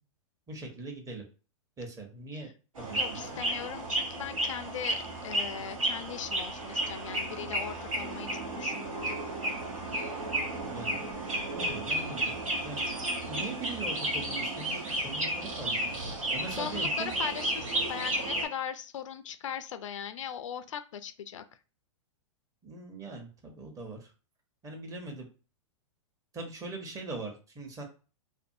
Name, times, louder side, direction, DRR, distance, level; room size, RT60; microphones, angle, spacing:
voice 1, 0.5-1.2 1.8-2.5 2.8-3.2 10.6-11.0 11.6-12.3 12.6-12.8 13.2-17.1 22.6-24.1 24.6-25.3 26.3-27.8, right 2 dB, 20° right, 2 dB, 0.9 m, -41 dB
sound 1, 2.8-18.5, right 1 dB, 85° right, 1.1 m, -33 dB
voice 2, 3.0-8.3 8.6-9.2 16.2-21.4, left 8 dB, 70° left, 10 dB, 0.4 m, -39 dB
2.6 x 2.5 x 2.6 m, 0.35 s
hypercardioid pair, 115°, 17 cm